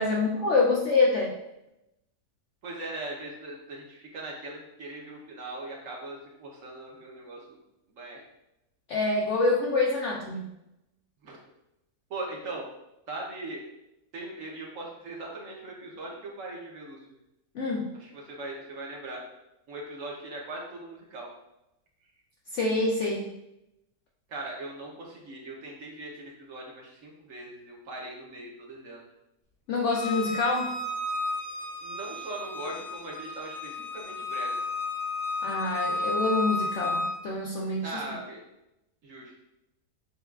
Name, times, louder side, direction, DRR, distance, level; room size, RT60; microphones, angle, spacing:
voice 1, 0.0-1.3 8.9-10.5 17.5-17.9 22.5-23.3 29.7-30.7 35.4-37.9, left 3 dB, 70° left, -2 dB, 0.7 m, -26 dB
voice 2, 2.6-7.6 7.9-8.2 11.2-11.4 12.1-12.7 13.1-13.6 14.1-17.0 17.9-19.2 19.7-21.3 24.3-29.0 31.8-34.6 37.8-38.4 39.0-39.3, right 2 dB, 60° right, -2 dB, 1.0 m, -40 dB
Bowed string instrument, 29.9-37.1, left 2 dB, 35° left, 0.8 m, -32 dB
6.6 x 2.3 x 2.3 m, 0.89 s
omnidirectional pair, 1.7 m